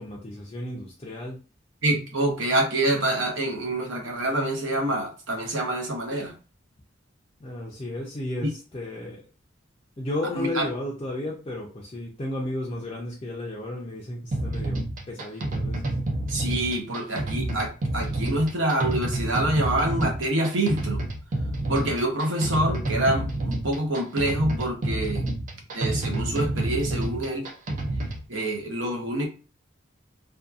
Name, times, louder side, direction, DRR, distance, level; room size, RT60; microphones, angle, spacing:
voice 1, 0.0-1.4 7.4-9.2 10.0-15.9, left 1 dB, 25° left, -4 dB, 0.4 m, -33 dB
voice 2, 1.8-6.3 8.4-8.5 10.3-10.7 16.3-21.0 21.7-25.3 25.7-27.5 28.3-29.3, right 1 dB, 75° right, 2 dB, 0.7 m, -26 dB
sound 1, 14.3-28.2, right 1 dB, 40° right, 0.4 m, -29 dB
2.6 x 2.3 x 2.4 m, 0.34 s
head